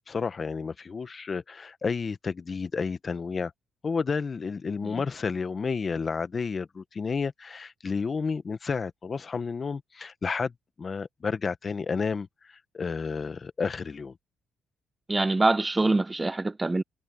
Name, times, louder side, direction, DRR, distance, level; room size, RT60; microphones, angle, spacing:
voice 1, 0.1-3.5 3.8-10.5 10.8-14.1, left 5 dB, 40° left, 1.2 m, -31 dB
voice 2, 15.1-16.8, right 2 dB, 20° right, 0.7 m, -25 dB
cardioid pair, 90°, 0 cm